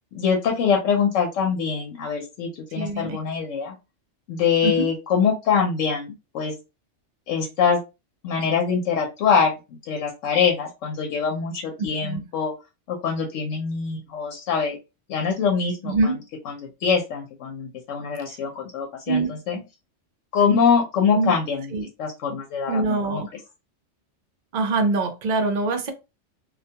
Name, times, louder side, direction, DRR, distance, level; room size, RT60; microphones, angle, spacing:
voice 1, 0.1-3.8 4.3-6.5 7.3-7.8 8.2-9.5 9.9-12.5 12.9-14.8 15.1-15.9 16.8-19.6 20.3-21.6 22.0-23.2, left 6 dB, 85° left, 1.0 m, -23 dB
voice 2, 2.7-3.2 4.6-4.9 11.8-12.2 15.8-16.2 19.1-19.7 21.1-21.4 21.7-21.9 22.7-23.3 24.5-25.9, right 3 dB, 55° right, 0.5 m, -24 dB
2.3 x 2.2 x 2.7 m
omnidirectional pair, 1.3 m